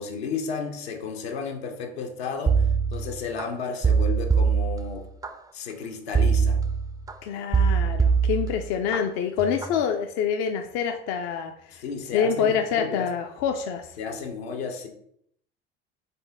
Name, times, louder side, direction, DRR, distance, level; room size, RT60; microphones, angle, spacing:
voice 1, 0.0-2.6 2.9-5.1 5.5-6.6 11.7-13.1 14.0-14.9, left 5 dB, 70° left, 3 dB, 0.9 m, -33 dB
sound 1, 2.5-3.4 3.8-5.3 6.1-7.1 7.5-9.0 9.4-9.8, right 6 dB, 10° right, 0.4 m, -23 dB
voice 2, 7.2-11.8 12.1-13.9, left 7 dB, 50° left, 5 dB, 0.5 m, -26 dB
4.2 x 3.5 x 3.4 m, 0.68 s
figure-of-eight pair, 65°, 33 cm